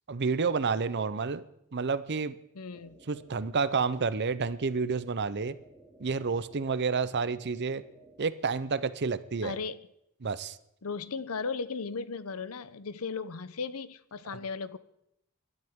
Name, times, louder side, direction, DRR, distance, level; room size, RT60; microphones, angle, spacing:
voice 1, 0.1-1.4 1.7-2.4 3.1-5.5 6.0-7.8 8.2-9.6 10.2-10.6, right 5 dB, 50° right, 14 dB, 0.7 m, -29 dB
voice 2, 2.5-3.0 9.4-9.8 10.8-14.8, left 4 dB, 70° left, 15 dB, 0.7 m, -36 dB
sound 1, 2.7-8.2, right 2 dB, 5° right, 2.5 m, -56 dB
24.0 x 12.0 x 3.7 m, 0.79 s
head